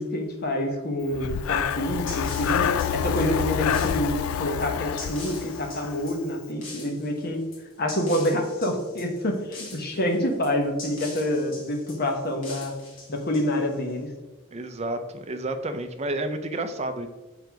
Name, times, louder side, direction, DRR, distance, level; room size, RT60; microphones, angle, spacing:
voice 1, 0.0-7.4 7.8-12.7 13.1-14.1, left 1 dB, 45° left, 3 dB, 1.1 m, -27 dB
Breathing, 1.1-6.1, left 8 dB, 85° left, 0.3 m, -27 dB
sound 1, 1.7-13.9, left 2 dB, 65° left, 2.1 m, -43 dB
voice 2, 14.5-17.1, right 2 dB, 30° right, 8 dB, 0.5 m, -30 dB
6.6 x 3.9 x 4.6 m, 1.2 s
head